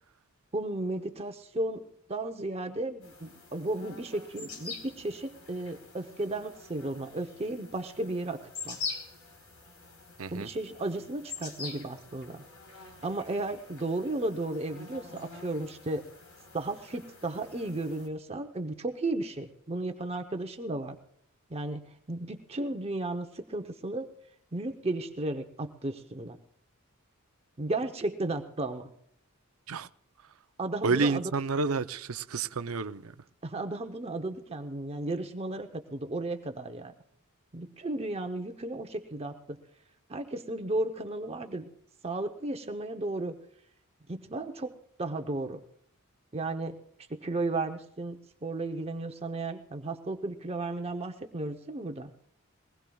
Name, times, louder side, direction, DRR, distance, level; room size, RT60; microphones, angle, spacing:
voice 1, 0.5-8.8 10.3-12.4 13.0-16.0 16.5-21.0 21.5-24.1 24.5-26.4 27.6-28.9 30.6-31.3 33.4-36.9 37.5-39.6 40.1-41.7 42.0-43.4 44.1-45.6 46.3-46.8 47.1-52.1, right 2 dB, 30° right, 0.8 m, -34 dB
sound 1, 3.0-18.1, left 4 dB, 80° left, 4.0 m, -45 dB
voice 2, 30.8-33.1, right 4 dB, 75° right, 0.6 m, -29 dB
22.0 x 19.5 x 2.3 m
head